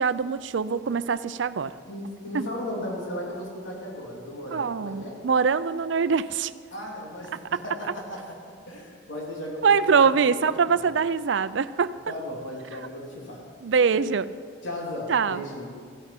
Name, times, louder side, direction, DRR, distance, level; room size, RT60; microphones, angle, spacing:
voice 1, 0.0-1.8 2.3-2.5 4.5-6.5 7.5-7.6 9.6-11.9 12.7-12.8 13.6-14.3 15.1-15.4, right 5 dB, 70° right, 15 dB, 0.5 m, -23 dB
voice 2, 1.9-5.2 6.7-10.4 10.7-10.9 12.1-13.4 13.9-14.0 14.6-15.7, left 1 dB, 80° left, -2 dB, 3.3 m, -36 dB
16.0 x 9.9 x 5.9 m, 2.1 s
head